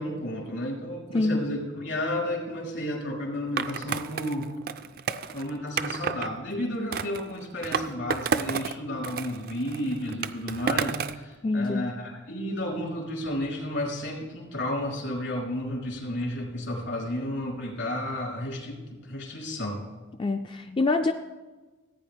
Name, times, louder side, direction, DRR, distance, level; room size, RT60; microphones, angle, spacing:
voice 1, 0.0-4.5 5.3-19.8, left 1 dB, 75° left, -2 dB, 3.5 m, -32 dB
Skateboard, 3.6-6.3 6.9-8.8 9.0-11.2, right 6 dB, 50° right, 0.4 m, -31 dB
voice 2, 11.4-11.8 20.2-21.1, left 3 dB, 25° left, 6 dB, 0.4 m, -25 dB
15.0 x 9.2 x 3.5 m, 1.2 s
head